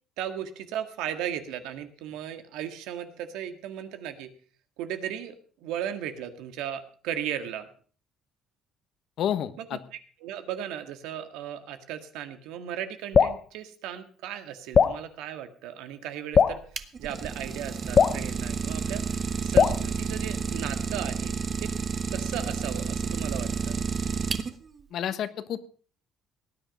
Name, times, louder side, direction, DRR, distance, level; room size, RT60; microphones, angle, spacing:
voice 1, 0.2-4.3 4.8-7.7 9.6-9.7 10.2-19.0 19.4-21.7 22.1-23.8, right 10 dB, 85° right, 8 dB, 1.8 m, -36 dB
voice 2, 9.2-9.8 24.9-25.7, left 10 dB, 55° left, 13 dB, 1.2 m, -30 dB
Drip, 13.1-13.4 14.7-15.0 16.3-16.6 17.9-18.2 19.5-19.8, left 6 dB, 35° left, 0.6 m, -19 dB
Idling, 16.5-24.8, right 5 dB, 30° right, 1.1 m, -31 dB
18.5 x 9.9 x 5.3 m, 0.44 s
cardioid pair, 140°, 0 cm